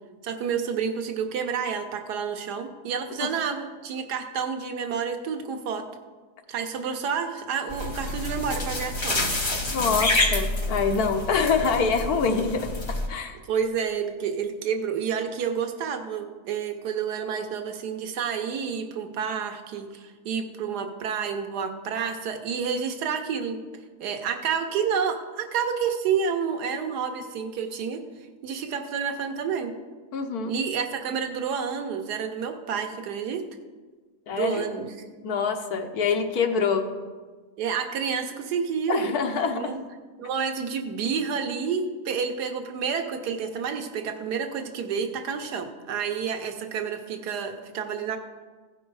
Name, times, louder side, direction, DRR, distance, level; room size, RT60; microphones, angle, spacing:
voice 1, 0.2-5.9 6.5-9.2 13.5-23.6 24.0-28.0 28.4-29.7 30.5-33.4 34.3-35.2 37.6-39.1 39.5-39.8 40.2-48.2, right 6 dB, 90° right, 5 dB, 1.4 m, -29 dB
sound 1, 7.7-13.1, left 1 dB, 25° left, 0.6 m, -28 dB
voice 2, 9.7-12.7 13.1-13.4 30.1-30.5 34.3-34.7 35.2-36.9 38.9-39.8, left 5 dB, 75° left, 5 dB, 1.4 m, -25 dB
15.5 x 5.4 x 4.7 m, 1.4 s
omnidirectional pair, 1.7 m